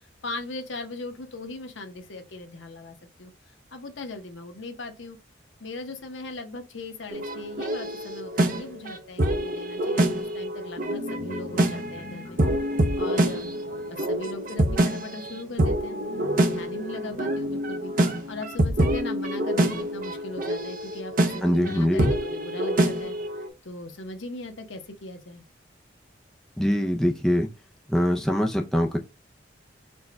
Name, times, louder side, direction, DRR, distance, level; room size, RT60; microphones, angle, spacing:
voice 1, 0.2-3.3 3.7-5.2 5.6-12.4 13.0-13.5 14.1-16.0 16.4-17.9 18.3-23.2 23.6-25.4, left 2 dB, 80° left, 0.8 m, -39 dB
sound 1, 7.1-23.5, right 1 dB, 45° right, 0.6 m, -26 dB
sound 2, 10.9-18.4, left 1 dB, 20° left, 0.8 m, -43 dB
voice 2, 21.4-22.1 26.6-27.5 27.9-29.0, equal, 5° left, 0.4 m, -23 dB
4.3 x 2.2 x 4.5 m
head